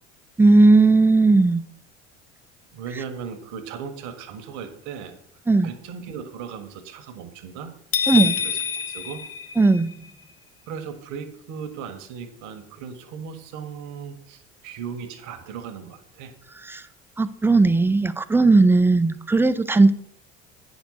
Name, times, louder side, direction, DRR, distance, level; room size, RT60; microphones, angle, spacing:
voice 1, 0.4-1.6 5.5-5.7 8.1-8.3 9.6-9.9 16.6-16.8 17.2-19.9, right 3 dB, 5° right, 12 dB, 0.6 m, -17 dB
voice 2, 2.7-5.2 5.6-7.7 8.1-9.2 10.7-16.3, right 6 dB, 60° right, 7 dB, 1.5 m, -37 dB
sound 1, 7.9-10.1, left 7 dB, 40° left, 0.9 m, -26 dB
8.9 x 5.4 x 6.5 m, 0.69 s
hypercardioid pair, 70°, 35 cm